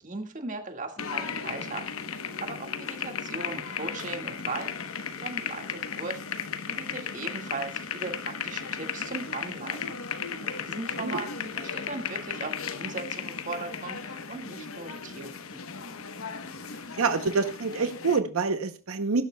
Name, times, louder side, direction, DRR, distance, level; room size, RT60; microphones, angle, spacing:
voice 1, 0.0-1.8 2.4-6.4 6.7-9.9 10.4-15.6, right 3 dB, 35° right, 4 dB, 1.9 m, -38 dB
sound 1, 1.0-18.2, left 6 dB, 80° left, 1.1 m, -35 dB
voice 2, 17.0-19.2, right 4 dB, 80° right, 9 dB, 0.8 m, -26 dB
18.5 x 11.0 x 2.3 m, 0.34 s
head